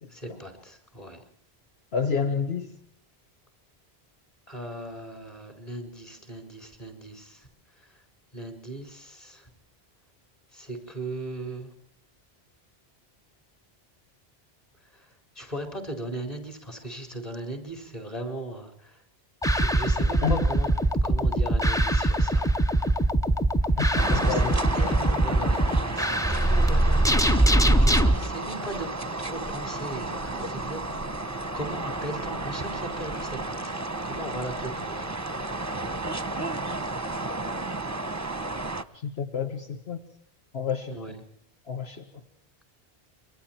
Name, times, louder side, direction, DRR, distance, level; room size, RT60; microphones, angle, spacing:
voice 1, 0.1-1.2 4.5-7.5 7.8-8.0 8.3-9.5 10.5-11.7 14.9-15.1 15.3-19.0 19.5-20.7 20.9-22.5 24.1-24.5 24.7-27.1 27.6-28.9 29.2-31.1 31.5-35.3 40.9-41.2, right 1 dB, 35° left, 6 dB, 4.8 m, -38 dB
voice 2, 1.9-2.7 20.2-20.4 23.8-24.6 38.9-40.0 40.5-41.0 41.7-42.0, left 6 dB, 75° left, 4 dB, 1.9 m, -29 dB
sound 1, 19.4-28.1, right 1 dB, 5° left, 0.9 m, -22 dB
sound 2, 24.0-38.8, right 2 dB, 15° right, 1.0 m, -32 dB
27.5 x 24.0 x 4.5 m, 0.64 s
omnidirectional pair, 1.1 m